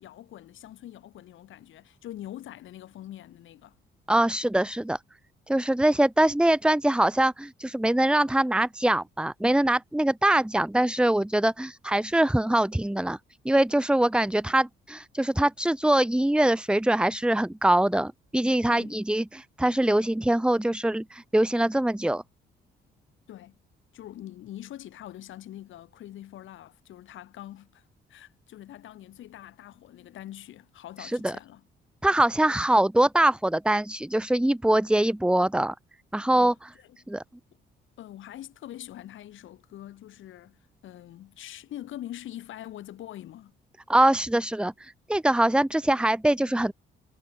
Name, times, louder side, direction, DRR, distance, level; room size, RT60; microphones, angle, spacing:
voice 1, 0.0-3.8 18.7-19.0 23.3-23.6 23.9-27.8 28.1-31.6 36.3-37.1 38.0-43.5, left 13 dB, 80° left, 5.5 m, -44 dB
voice 2, 4.1-5.0 5.5-13.2 13.4-22.2 31.0-31.4 32.0-35.7 36.1-36.5 37.1-37.2 43.9-46.7, right 1 dB, 5° right, 1.5 m, -23 dB
cardioid pair, 90°, 20 cm